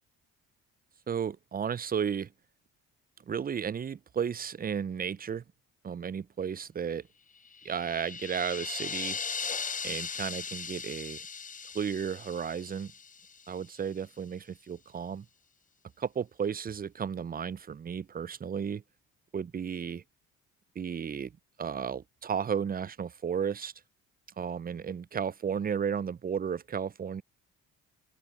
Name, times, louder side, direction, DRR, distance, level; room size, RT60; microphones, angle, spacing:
voice 1, 1.1-2.3 3.3-5.4 5.8-7.1 7.6-9.2 9.8-11.2 11.7-12.9 13.5-15.3 16.0-18.8 19.3-20.0 20.8-21.3 21.6-23.7 24.4-27.2, right 7 dB, 25° right, 0.5 m, -33 dB
sound 1, 7.4-13.7, left 6 dB, 25° left, 0.6 m, -38 dB
open air
supercardioid pair, 65°, 35 cm